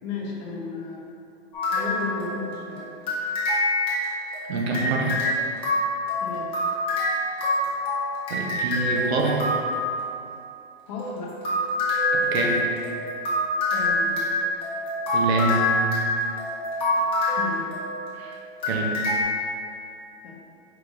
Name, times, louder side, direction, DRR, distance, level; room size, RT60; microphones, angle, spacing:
voice 1, 0.0-1.0 1.7-2.9 6.2-6.6 10.9-11.4 13.7-14.2 17.4-17.7 20.2-20.3, left 4 dB, 45° left, -2 dB, 0.8 m, -34 dB
sound 1, 1.5-2.6 3.1-10.0 11.0-18.2 18.6-19.2, left 1 dB, 15° left, 1.0 m, -26 dB
voice 2, 4.5-5.2 8.3-9.5 12.1-12.7 15.1-15.9 18.1-18.4 18.7-19.0, right 3 dB, 75° right, 0 dB, 0.8 m, -26 dB
4.8 x 3.6 x 2.4 m, 2.6 s
hypercardioid pair, 140°, 32 cm